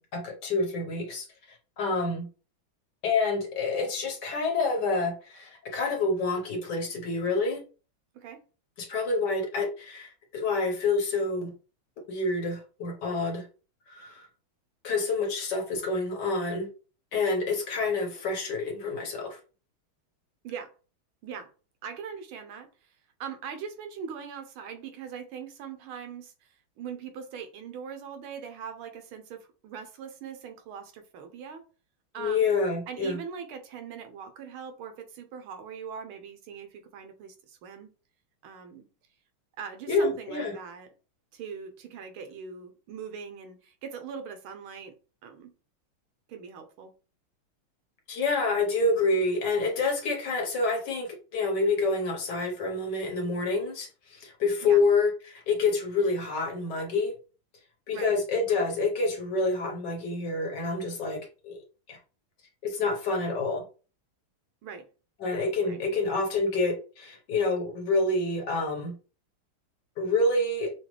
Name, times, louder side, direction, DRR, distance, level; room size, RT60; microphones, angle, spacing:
voice 1, 0.0-2.3 3.0-7.6 8.8-11.5 12.1-13.5 13.9-14.3 14.8-16.7 17.1-19.4 32.2-33.2 39.9-40.5 48.1-57.1 57.9-62.0 62.6-63.6 65.2-68.9 70.0-70.7, left 3 dB, 60° left, 2 dB, 1.5 m, -28 dB
voice 2, 21.8-22.9 23.2-26.5 26.8-31.7 32.1-32.5 32.9-37.9 38.4-38.9 39.6-40.9 41.3-45.0 45.2-45.5 46.3-46.9 54.6-54.8 57.9-58.1 64.6-64.9 65.6-65.8, right 7 dB, 80° right, 7 dB, 1.6 m, -41 dB
6.2 x 2.4 x 3.1 m, 0.35 s
omnidirectional pair, 2.3 m